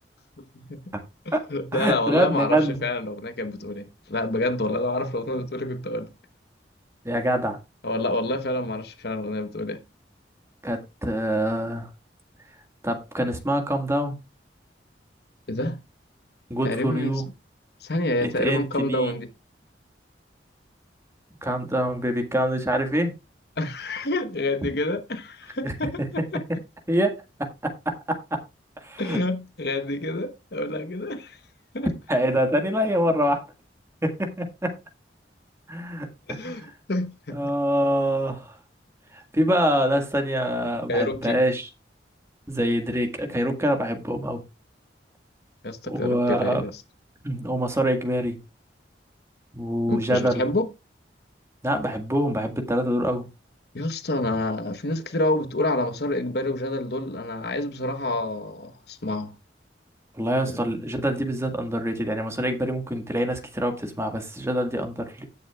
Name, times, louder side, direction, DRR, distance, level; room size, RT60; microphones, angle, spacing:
voice 1, 0.5-0.9 1.5-6.1 7.8-9.8 15.5-15.8 16.6-17.1 17.8-19.3 23.6-26.4 29.0-31.4 31.7-31.9 36.3-37.5 40.9-41.4 45.6-46.7 49.9-50.7 53.7-59.3 60.5-60.6, left 2 dB, 60° left, 1.1 m, -28 dB
voice 2, 1.7-2.8 7.1-7.6 10.6-11.9 12.8-14.2 16.5-17.2 18.2-19.1 21.4-23.1 25.6-25.7 26.9-28.4 28.8-29.2 32.1-33.4 34.0-34.8 35.7-36.7 37.3-38.5 39.1-41.7 42.5-44.4 45.9-46.6 47.2-48.4 49.5-50.4 51.6-53.3 60.1-65.3, equal, 15° right, 1.7 m, -25 dB
16.5 x 6.6 x 2.4 m
head